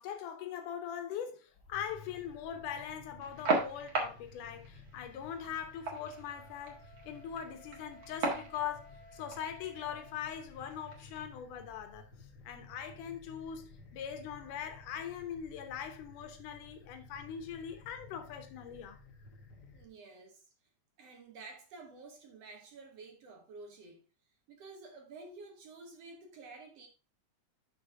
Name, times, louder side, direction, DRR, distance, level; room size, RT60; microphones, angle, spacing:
voice 1, 0.0-12.0 12.4-19.0, left 8 dB, 85° left, 2.6 m, -41 dB
sound 1, 1.5-19.9, left 3 dB, 40° left, 2.0 m, -55 dB
sound 2, 3.2-11.2, right 3 dB, 45° right, 2.1 m, -39 dB
Wind instrument woodwind instrument, 5.5-10.2, equal, 65° left, 2.1 m, -58 dB
voice 2, 19.7-20.5 21.0-24.0 24.5-26.9, right 3 dB, 60° right, 2.1 m, -51 dB
6.9 x 6.3 x 3.5 m
omnidirectional pair, 3.6 m